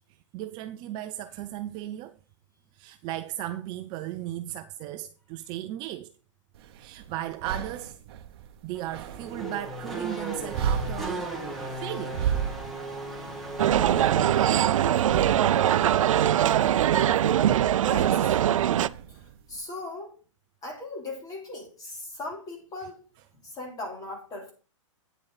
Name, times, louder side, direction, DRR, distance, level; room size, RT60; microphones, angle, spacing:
voice 1, 0.3-2.2 2.7-6.1 6.7-8.0 8.6-11.3 11.6-12.2 13.2-13.3 15.7-15.8 17.8-18.2, right 13 dB, 25° right, 0.5 m, -36 dB
sound 1, 6.5-19.6, right 8 dB, 50° right, 0.9 m, -36 dB
Race car auto racing / Accelerating revving vroom, 8.7-15.4, right 2 dB, ahead, 1.8 m, -36 dB
sound 2, 13.6-18.9, right 11 dB, 80° right, 0.4 m, -22 dB
voice 2, 15.1-15.7 17.7-18.1 19.1-20.2 20.6-23.0 23.4-24.5, left 2 dB, 20° left, 3.3 m, -39 dB
9.2 x 7.6 x 4.0 m
hypercardioid pair, 145°, 17 cm